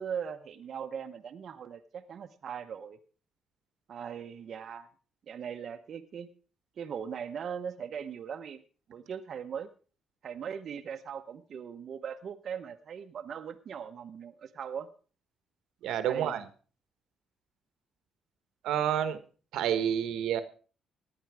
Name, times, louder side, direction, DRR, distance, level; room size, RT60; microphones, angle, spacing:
voice 1, 0.0-3.0 3.9-4.9 5.3-6.3 6.8-8.6 8.9-9.7 10.2-14.9 16.1-16.4, right 7 dB, 60° right, 1.0 m, -39 dB
voice 2, 15.8-16.4 18.6-19.2 19.5-20.4, right 9 dB, 85° right, 1.3 m, -29 dB
15.5 x 10.0 x 4.8 m
cardioid pair, 90°, 0 cm